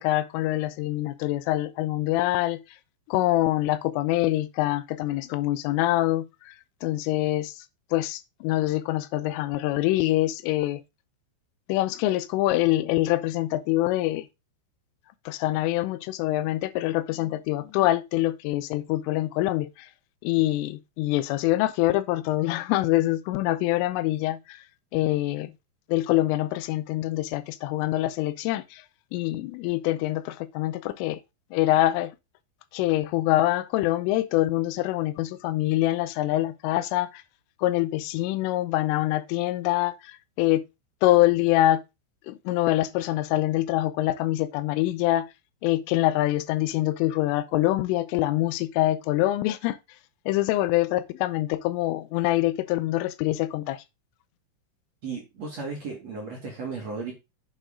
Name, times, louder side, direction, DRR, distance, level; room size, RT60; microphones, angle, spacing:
voice 1, 0.0-2.6 3.1-6.5 6.8-7.6 7.9-10.8 11.7-14.3 15.3-19.9 20.2-24.6 24.9-25.5 25.9-28.8 29.1-31.2 31.5-32.1 32.7-37.2 37.6-40.6 41.0-41.8 42.3-45.3 45.6-49.8 50.3-53.8, left 16 dB, 85° left, 3.2 m, -25 dB
voice 2, 55.0-57.1, right 4 dB, 50° right, 2.3 m, -35 dB
9.0 x 6.4 x 3.7 m
omnidirectional pair, 5.7 m